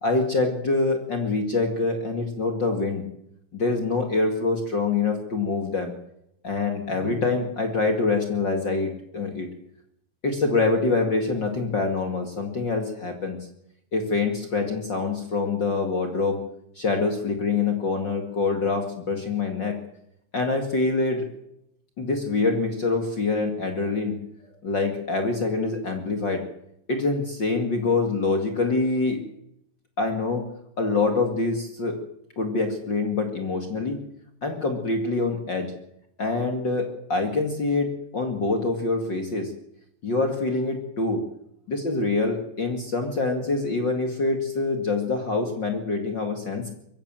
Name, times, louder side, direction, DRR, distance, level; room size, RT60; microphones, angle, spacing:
voice 1, 0.0-3.0 3.5-5.9 6.4-9.5 10.2-13.4 13.9-16.4 16.8-19.8 20.3-21.3 22.0-24.1 24.6-26.4 26.9-29.2 30.0-30.4 30.8-32.0 32.4-34.0 34.4-35.7 36.2-39.5 40.0-41.2 41.7-46.7, left 3 dB, 35° left, 4 dB, 2.4 m, -25 dB
23.0 x 16.0 x 7.5 m, 0.75 s
omnidirectional pair, 3.9 m